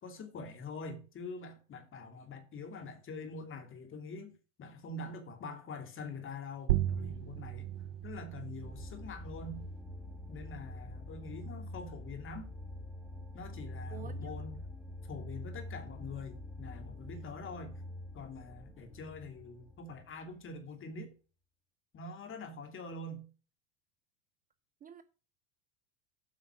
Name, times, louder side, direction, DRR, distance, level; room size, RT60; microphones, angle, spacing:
voice 1, 0.0-7.7 8.0-9.6 10.3-12.5 13.3-14.6 15.1-17.7 18.1-21.1 21.9-23.2, left 3 dB, 30° left, 2.5 m, -45 dB
sound 1, 6.7-11.8, right 13 dB, 85° right, 0.7 m, -38 dB
sound 2, 8.6-20.6, left 1 dB, 5° right, 1.2 m, -45 dB
voice 2, 13.9-14.3 24.8-25.0, right 10 dB, 25° right, 0.5 m, -48 dB
8.2 x 5.6 x 5.9 m
supercardioid pair, 110°, 38 cm